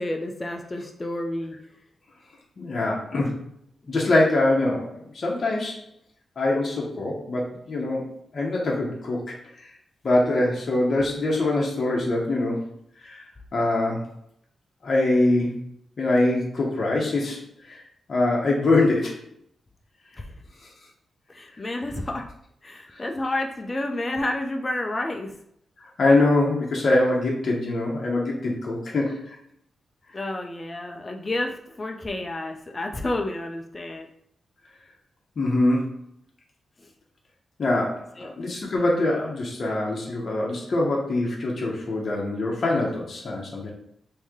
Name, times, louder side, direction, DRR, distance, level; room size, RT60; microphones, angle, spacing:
voice 1, 0.0-1.6 20.2-20.3 21.3-22.3 22.6-25.3 30.1-34.1 38.2-38.3, left 1 dB, 25° left, 2 dB, 0.3 m, -30 dB
voice 2, 2.6-3.4 3.9-4.9 5.1-5.8 6.4-8.0 8.3-9.4 10.0-12.7 13.0-13.2 13.5-14.1 14.8-15.5 16.0-17.4 17.7-17.8 18.1-19.2 22.9-23.0 26.0-29.4 35.4-35.8 37.6-43.7, left 2 dB, 45° left, -3 dB, 0.7 m, -23 dB
3.1 x 2.6 x 3.5 m, 0.71 s
wide cardioid pair, 135°, 0 cm